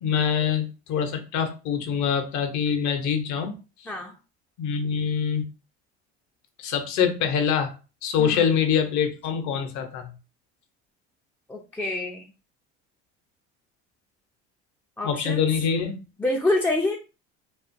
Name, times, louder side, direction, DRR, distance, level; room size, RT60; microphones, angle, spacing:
voice 1, 0.0-3.9 4.6-5.4 6.6-7.7 8.0-10.1 15.0-16.0, left 7 dB, 60° left, 6 dB, 0.7 m, -25 dB
voice 2, 11.5-12.2 15.0-15.5 16.2-17.0, left 2 dB, 5° left, 0 dB, 0.3 m, -26 dB
2.4 x 2.4 x 2.5 m, 0.32 s
hypercardioid pair, 75°, 33 cm